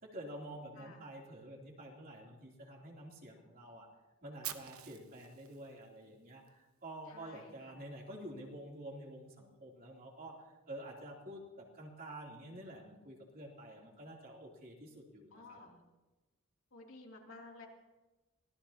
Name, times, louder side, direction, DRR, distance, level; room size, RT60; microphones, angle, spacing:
voice 1, 0.0-3.9 4.2-15.6, right 1 dB, 45° right, -2 dB, 3.2 m, -49 dB
Fire, 4.4-6.5, right 12 dB, 85° right, 1.1 m, -47 dB
voice 2, 7.1-7.8 15.3-15.8 16.7-17.7, left 3 dB, 65° left, -1 dB, 2.9 m, -54 dB
24.5 x 17.5 x 2.9 m, 1.1 s
head